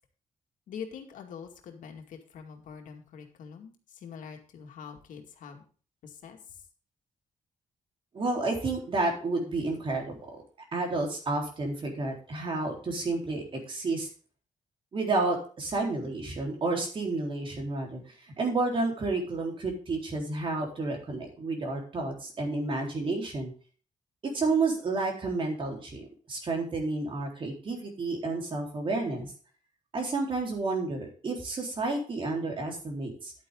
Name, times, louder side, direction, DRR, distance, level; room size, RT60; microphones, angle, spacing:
voice 1, 0.7-5.6 6.0-6.6, left 7 dB, 90° left, 3 dB, 2.2 m, -44 dB
voice 2, 8.1-10.2 10.7-14.1 14.9-18.0 18.4-23.5 24.2-29.3 29.9-33.3, right 3 dB, 40° right, 0 dB, 3.9 m, -30 dB
11.0 x 8.7 x 3.8 m, 0.39 s
cardioid pair, 130°, 13 cm